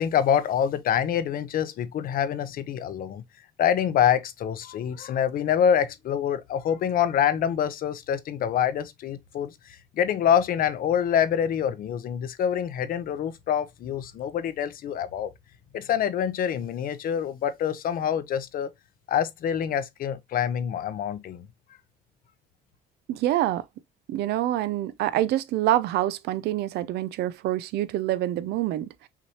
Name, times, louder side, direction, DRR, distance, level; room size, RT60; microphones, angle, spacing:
voice 1, 0.0-3.2 3.6-15.3 15.7-18.7 19.1-21.5, left 9 dB, 60° left, 0.7 m, -26 dB
voice 2, 23.1-23.7 24.1-29.1, right 13 dB, 75° right, 0.5 m, -26 dB
5.9 x 2.9 x 2.8 m
cardioid pair, 110°, 17 cm